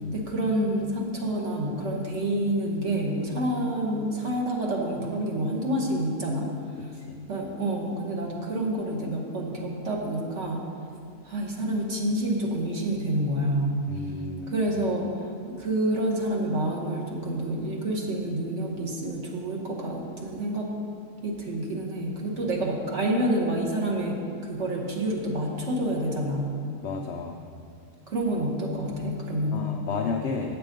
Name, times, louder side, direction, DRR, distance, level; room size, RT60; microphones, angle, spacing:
voice 1, 0.1-6.5 7.3-10.6 11.2-13.7 14.5-15.3 15.6-20.7 21.2-26.5 28.1-29.7, right 1 dB, 50° right, -1 dB, 1.4 m, -28 dB
voice 2, 13.9-14.7 26.8-27.4 29.5-30.6, left 4 dB, 70° left, 3 dB, 0.6 m, -32 dB
8.4 x 6.8 x 5.1 m, 2.6 s
omnidirectional pair, 1.7 m